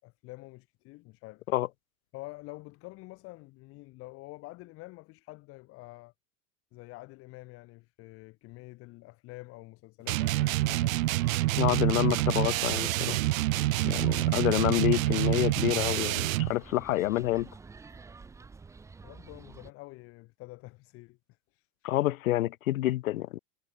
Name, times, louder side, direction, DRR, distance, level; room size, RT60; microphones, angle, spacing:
voice 1, 0.0-1.4 2.1-6.1 6.7-11.0 13.8-14.2 19.0-21.2 21.5-21.9, left 22 dB, 35° left, 3.8 m, -47 dB
sound 1, 10.1-16.5, right 18 dB, 75° right, 0.8 m, -27 dB
sound 2, 11.1-19.7, right 4 dB, 5° right, 1.4 m, -50 dB
voice 2, 11.6-13.2 13.8-17.5 21.8-23.4, left 16 dB, 85° left, 1.3 m, -28 dB
supercardioid pair, 170°, 40 cm